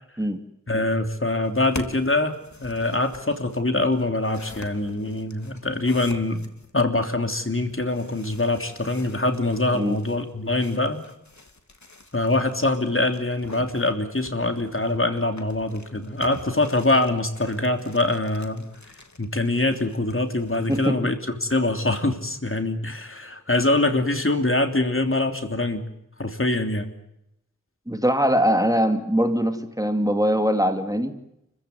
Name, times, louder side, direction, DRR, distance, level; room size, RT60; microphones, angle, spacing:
voice 1, 0.7-6.4 6.7-11.0 12.1-18.7 19.2-25.8 26.2-26.9, left 2 dB, 40° left, 6 dB, 3.2 m, -24 dB
sound 1, 1.4-6.7 7.7-20.9, left 2 dB, 65° left, 2.8 m, -45 dB
voice 2, 20.7-21.0 27.9-31.2, equal, 10° right, 7 dB, 2.6 m, -22 dB
30.0 x 15.5 x 9.5 m, 0.83 s
wide cardioid pair, 45°, 31 cm